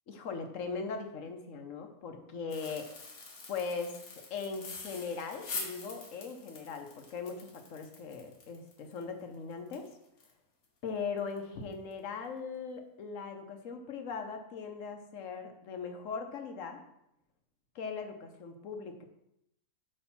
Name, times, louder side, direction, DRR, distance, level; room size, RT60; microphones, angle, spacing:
voice 1, 0.1-2.9 3.5-9.9 10.8-16.8 17.7-19.1, left 5 dB, 65° left, 6 dB, 1.2 m, -39 dB
sound 1, 2.5-10.3 10.6-10.7 11.2-11.4 11.7-11.9, left 4 dB, 90° left, 1.8 m, -45 dB
7.9 x 3.1 x 5.8 m, 0.81 s
omnidirectional pair, 1.5 m